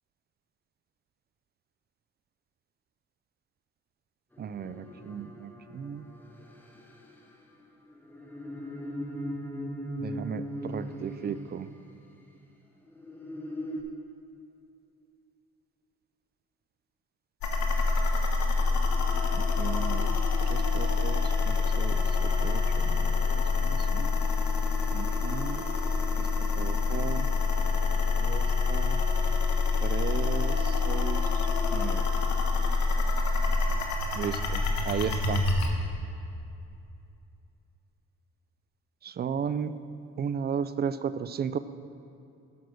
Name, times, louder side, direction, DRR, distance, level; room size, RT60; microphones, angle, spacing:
sound 1, 4.3-12.2 12.8-13.8, equal, 5° left, 1.1 m, -40 dB
voice 1, 4.4-6.0 10.0-11.7 19.3-20.2 20.5-24.1 24.9-25.6 26.2-27.3 28.2-29.0 29.8-32.0 34.1-35.4 39.0-39.7 40.2-41.6, right 7 dB, 35° right, 13 dB, 0.4 m, -35 dB
sound 2, 17.4-35.7, left 4 dB, 70° left, 1.3 m, -26 dB
9.2 x 6.0 x 6.3 m, 2.6 s
cardioid pair, 90°, 30 cm